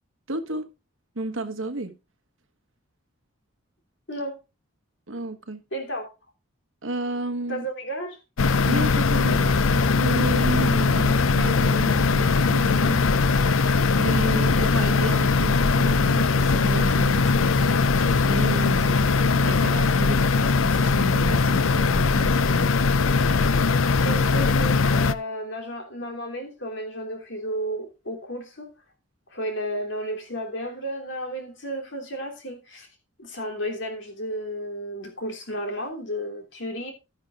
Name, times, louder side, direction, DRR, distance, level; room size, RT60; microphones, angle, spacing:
voice 1, 0.3-0.7 1.1-2.0 5.1-5.6 6.8-7.7 8.6-13.1 14.0-22.8, right 2 dB, 75° right, 1.3 m, -32 dB
voice 2, 5.7-6.1 7.5-8.2 24.0-28.7 29.3-32.9 33.2-36.9, equal, 60° left, 3.0 m, -33 dB
sound 1, 8.4-25.1, left 4 dB, 80° left, 0.6 m, -20 dB
12.0 x 10.5 x 2.4 m
head